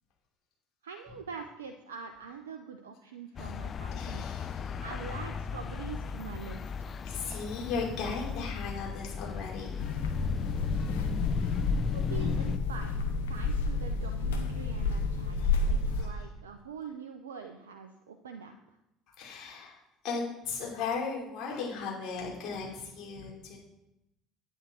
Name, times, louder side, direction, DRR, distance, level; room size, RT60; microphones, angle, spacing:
voice 1, 0.8-4.3 4.8-6.9 11.8-15.4 15.7-18.8, right 6 dB, 85° right, 5 dB, 0.7 m, -44 dB
sound 1, 3.4-12.6, left 6 dB, 40° left, 0.6 m, -36 dB
voice 2, 3.9-4.8 7.0-9.8 15.3-16.1 19.2-23.6, left 5 dB, 55° left, -3 dB, 4.8 m, -37 dB
sound 2, 9.8-16.0, left 3 dB, 80° left, 1.2 m, -30 dB
9.9 x 9.8 x 4.6 m, 0.86 s
hypercardioid pair, 65°, 0 cm